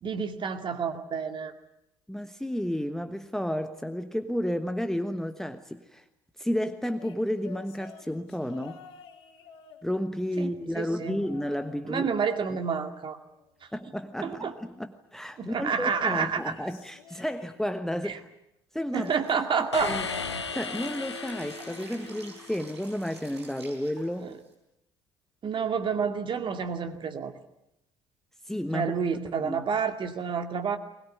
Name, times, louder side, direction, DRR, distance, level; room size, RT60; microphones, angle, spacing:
voice 1, 0.0-1.5 10.4-10.5 10.7-11.2 11.9-13.2 14.2-14.5 15.4-16.5 18.0-18.2 18.9-20.0 24.2-24.3 25.4-27.3 28.7-30.8, right 6 dB, 35° right, 2.3 m, -29 dB
voice 2, 2.1-6.0 6.4-8.8 9.8-12.1 13.7-18.3 18.7-19.1 19.8-20.1 20.5-24.3 28.5-28.9 29.4-29.7, equal, 5° left, 1.3 m, -32 dB
sound 1, 7.0-10.3 10.8-11.8 12.1-13.6 15.7-17.9 18.8-20.2 20.6-20.9 22.1-22.2, left 8 dB, 70° left, 3.6 m, -51 dB
Drip, 18.9-24.5, right 3 dB, 85° right, 4.6 m, -50 dB
sound 2, 19.7-22.6, left 5 dB, 85° left, 1.1 m, -35 dB
21.0 x 21.0 x 9.5 m
figure-of-eight pair, 55°, 14 cm